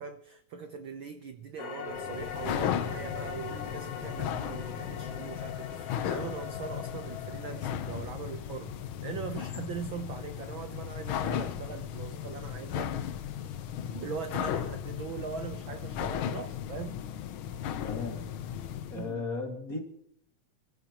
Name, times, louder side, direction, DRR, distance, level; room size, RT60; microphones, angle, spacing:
voice 1, 0.0-13.1 13.9-17.0 18.9-19.3, right 6 dB, 70° right, 1.1 m, -41 dB
sound 1, 1.6-8.1, left 7 dB, 60° left, 2.1 m, -41 dB
sound 2, 1.9-19.1, left 9 dB, 80° left, 1.1 m, -36 dB
voice 2, 17.7-18.3 18.9-19.8, left 4 dB, 30° left, 2.1 m, -36 dB
29.0 x 14.5 x 3.0 m
omnidirectional pair, 3.3 m